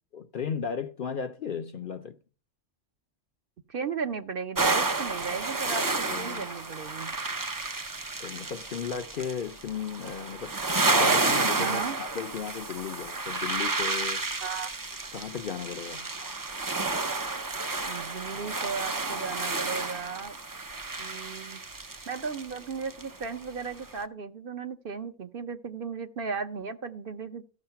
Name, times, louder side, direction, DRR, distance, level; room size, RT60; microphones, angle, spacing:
voice 1, 0.1-2.2 6.1-6.4 8.2-10.6 10.9-14.2 15.1-16.1, left 7 dB, 55° left, 0.7 m, -35 dB
voice 2, 3.7-5.9 6.2-7.1 11.6-12.0 14.4-14.7 17.8-20.4 21.0-21.6 22.1-27.5, right 5 dB, 55° right, 0.8 m, -35 dB
sound 1, 4.5-23.4 23.8-24.0, right 3 dB, 30° right, 0.4 m, -31 dB
13.5 x 6.4 x 5.7 m
omnidirectional pair, 1.3 m